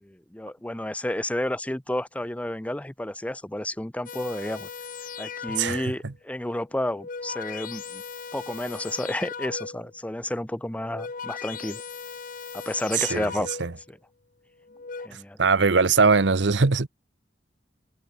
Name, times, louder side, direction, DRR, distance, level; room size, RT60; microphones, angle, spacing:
voice 1, 0.0-4.7 5.2-8.0 8.3-11.8 12.5-13.5 13.9-14.0 15.0-15.4, left 1 dB, 10° left, 0.7 m, -31 dB
sound 1, 4.1-6.1 6.8-10.0 10.7-13.9 14.6-15.1, left 5 dB, 50° left, 1.0 m, -38 dB
voice 2, 5.6-6.1 13.0-13.3 13.6-13.7 15.4-16.9, right 4 dB, 80° right, 0.9 m, -21 dB
head